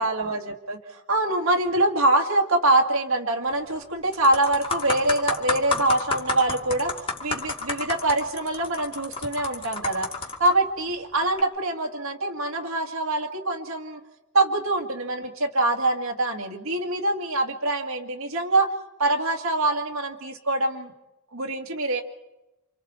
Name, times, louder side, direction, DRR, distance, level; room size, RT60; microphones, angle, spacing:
voice 1, 0.0-10.1 10.4-14.0 14.3-18.7 19.0-20.9 21.3-22.0, right 2 dB, 75° right, 0 dB, 2.2 m, -24 dB
sound 1, 3.5-3.8 4.1-10.5 11.2-11.4, left 3 dB, 25° left, 2.4 m, -30 dB
29.0 x 26.5 x 4.4 m, 0.98 s
head